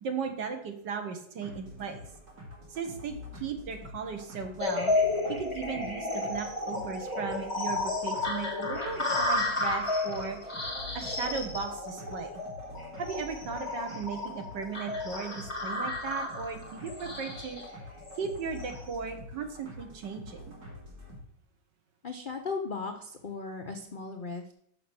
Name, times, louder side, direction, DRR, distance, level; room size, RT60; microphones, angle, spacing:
voice 1, 0.0-2.1 2.7-4.9 5.3-12.3 13.0-17.6 18.1-20.6, right 5 dB, 75° right, 5 dB, 1.9 m, -37 dB
sound 1, 1.4-21.2, left 1 dB, 60° right, 2.6 m, -47 dB
sound 2, 4.6-18.8, left 2 dB, 15° left, 1.7 m, -33 dB
voice 2, 22.0-24.5, left 4 dB, 65° left, 4 dB, 0.5 m, -37 dB
6.4 x 6.1 x 6.1 m, 0.73 s
omnidirectional pair, 1.9 m